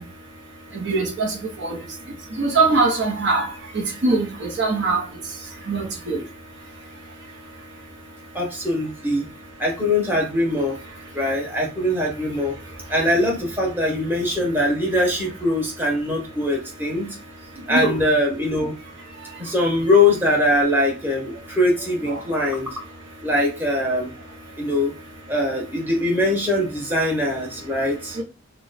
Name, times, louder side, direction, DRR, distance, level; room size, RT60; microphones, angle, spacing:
voice 1, 0.7-1.3 1.6-1.8 2.4-3.5 4.0-5.0 5.7-6.2 17.7-18.0 22.1-22.2, right 3 dB, 60° right, 0.8 m, -21 dB
voice 2, 8.3-9.2 9.6-10.7 11.1-12.5 12.9-17.1 17.7-18.7 19.4-22.8 23.2-24.1 24.6-24.9 25.3-28.2, left 1 dB, 10° right, 1.0 m, -22 dB
3.0 x 2.3 x 4.0 m
head